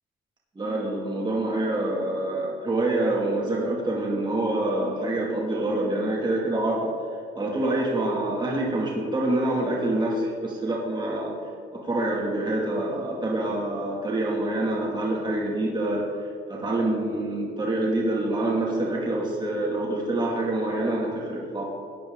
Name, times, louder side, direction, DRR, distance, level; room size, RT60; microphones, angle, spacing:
voice 1, 0.6-6.9 7.3-11.3 11.7-16.1 16.5-21.6, right 1 dB, 20° right, -4 dB, 2.3 m, -26 dB
15.0 x 9.4 x 3.8 m, 2.2 s
cardioid pair, 90°, 20 cm